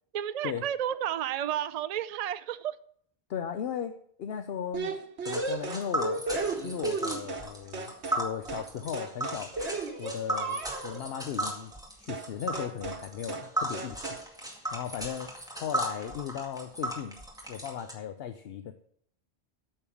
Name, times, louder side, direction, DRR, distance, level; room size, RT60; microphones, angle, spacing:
voice 1, 0.1-2.8, right 10 dB, 50° right, 13 dB, 0.5 m, -32 dB
voice 2, 3.3-4.9 5.3-6.2 6.6-9.5 10.0-11.7 12.0-14.2 14.7-15.3 15.6-17.2 17.5-18.7, left 8 dB, 65° left, 9 dB, 0.9 m, -36 dB
sound 1, 4.7-7.5 7.7-8.2 8.5-8.7 8.9-11.0 12.1-12.3 12.5-13.0 13.3-13.5 13.7-14.2, right 4 dB, 90° right, 1.5 m, -34 dB
Tick, 5.2-17.9, right 1 dB, 5° right, 2.0 m, -36 dB
8.8 x 6.6 x 7.1 m, 0.64 s
omnidirectional pair, 1.1 m